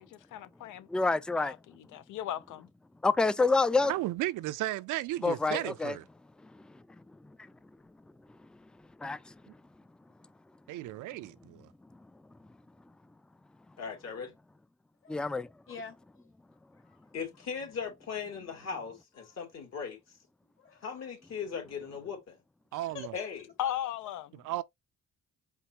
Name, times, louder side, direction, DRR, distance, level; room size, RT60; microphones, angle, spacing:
voice 1, 0.0-0.9 1.4-2.7 23.6-24.4, left 11 dB, 80° left, 0.6 m, -37 dB
voice 2, 0.9-1.5 3.0-3.9 5.2-5.9 9.0-9.2 15.1-15.5, left 3 dB, 5° left, 0.3 m, -27 dB
voice 3, 3.8-6.0 10.7-11.7 22.7-23.1 24.4-24.6, right 16 dB, 80° right, 0.5 m, -34 dB
voice 4, 13.8-14.3 17.1-20.0 20.8-22.4 23.1-23.4, left 6 dB, 60° left, 2.5 m, -38 dB
voice 5, 15.7-16.3 16.8-17.0 19.2-19.4 20.4-21.0 22.7-23.3 23.6-23.7, left 5 dB, 45° left, 1.8 m, -47 dB
4.6 x 3.6 x 2.9 m
cardioid pair, 90°, 30 cm